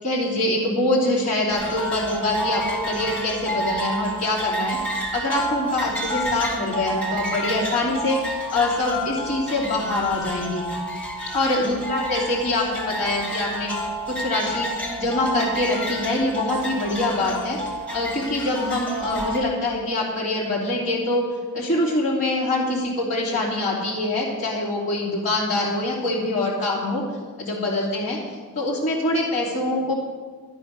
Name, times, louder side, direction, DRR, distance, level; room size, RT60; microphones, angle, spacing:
voice 1, 0.0-10.6 11.3-13.7 14.1-14.7 15.0-17.6 17.9-21.2 21.5-27.0 27.4-28.2 28.5-29.9, left 2 dB, 35° left, -6 dB, 3.1 m, -24 dB
sound 1, 1.5-19.4, right 1 dB, 5° left, 2.3 m, -29 dB
12.0 x 11.5 x 6.5 m, 1.4 s
head